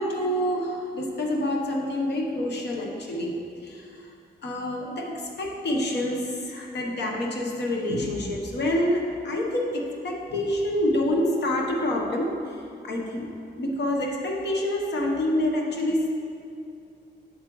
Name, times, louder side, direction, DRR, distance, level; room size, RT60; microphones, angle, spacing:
voice 1, 0.0-4.0 4.4-12.6 12.8-13.3 13.6-16.1, left 1 dB, 70° left, 0 dB, 1.0 m, -27 dB
7.3 x 7.2 x 3.1 m, 2.5 s
wide cardioid pair, 150°, 18 cm